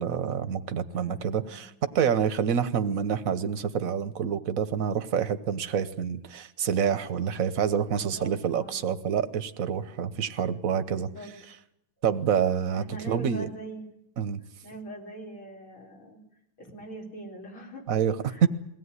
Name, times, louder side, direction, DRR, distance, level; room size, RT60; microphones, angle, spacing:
voice 1, 0.0-11.1 12.0-13.5 14.2-14.4 17.9-18.5, right 7 dB, 50° right, 10 dB, 1.2 m, -27 dB
voice 2, 0.9-1.6 7.9-8.9 10.8-11.3 12.7-13.8 14.6-16.2 16.6-17.8 18.2-18.5, right 1 dB, 75° left, -1 dB, 4.9 m, -42 dB
22.0 x 17.0 x 9.7 m, 0.79 s
omnidirectional pair, 2.3 m